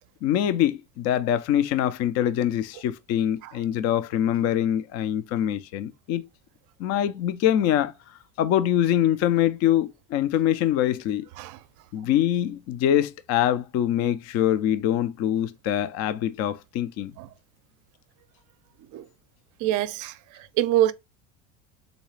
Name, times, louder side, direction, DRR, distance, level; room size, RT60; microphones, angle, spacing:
voice 1, 0.2-6.3 6.8-7.9 8.4-11.3 11.9-17.1, left 11 dB, 40° left, 0.4 m, -24 dB
voice 2, 19.6-20.1 20.6-20.9, right 13 dB, 50° right, 0.5 m, -23 dB
3.9 x 2.3 x 3.2 m
supercardioid pair, 110°, 40 cm